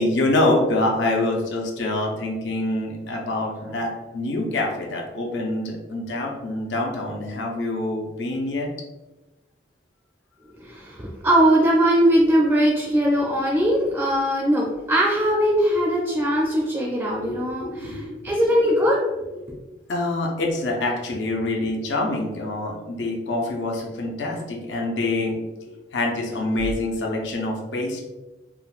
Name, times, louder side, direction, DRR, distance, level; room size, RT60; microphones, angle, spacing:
voice 1, 0.0-8.7 17.1-18.3 19.3-19.4 19.9-25.4 25.9-28.0, left 2 dB, 85° left, -1 dB, 0.5 m, -26 dB
voice 2, 10.6-19.0, equal, 15° right, -4 dB, 0.4 m, -20 dB
3.6 x 2.2 x 2.4 m, 1.1 s
head